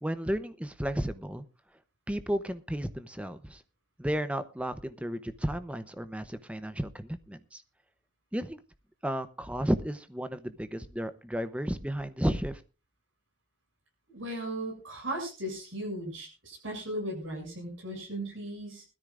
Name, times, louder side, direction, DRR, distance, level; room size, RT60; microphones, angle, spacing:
voice 1, 0.0-1.4 2.1-3.6 4.0-7.6 8.3-8.6 9.0-12.6, equal, 5° right, 11 dB, 0.7 m, -33 dB
voice 2, 14.1-18.9, right 1 dB, 90° right, 2 dB, 7.0 m, -37 dB
21.0 x 13.5 x 2.5 m, 0.32 s
head